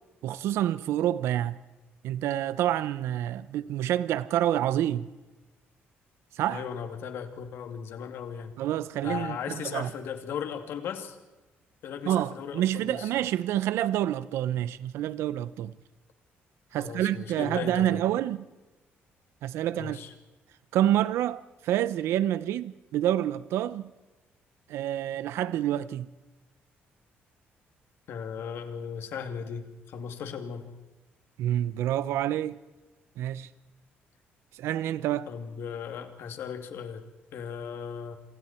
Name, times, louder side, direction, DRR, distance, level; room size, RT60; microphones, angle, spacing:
voice 1, 0.2-1.6 2.0-5.1 6.3-6.6 8.6-9.9 12.0-15.7 16.7-18.5 19.4-20.0 20.7-23.9 24.7-26.1 31.4-32.6 33.2-33.5 34.5-35.3, right 12 dB, 90° right, 0.8 m, -28 dB
voice 2, 6.4-8.5 9.0-11.2 11.8-13.1 16.8-18.0 19.8-20.1 28.1-30.7 35.3-37.0 37.3-38.2, left 7 dB, 65° left, 3.0 m, -37 dB
28.0 x 27.0 x 4.5 m
cardioid pair, 150°, 4 cm